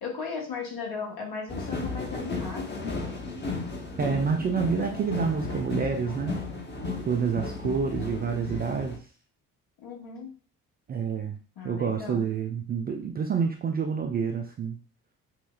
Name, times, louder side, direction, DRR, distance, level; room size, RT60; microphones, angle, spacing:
voice 1, 0.0-3.0 4.5-5.1 7.9-8.1 9.8-10.3 11.6-12.2, left 5 dB, 55° left, 0 dB, 1.3 m, -37 dB
sound 1, 1.5-9.0, left 3 dB, 25° left, 0.9 m, -34 dB
voice 2, 4.0-6.4 7.1-9.0 10.9-11.4 11.6-14.8, right 6 dB, 25° right, 3 dB, 0.4 m, -28 dB
5.6 x 2.0 x 2.4 m, 0.38 s
figure-of-eight pair, 45°, 44 cm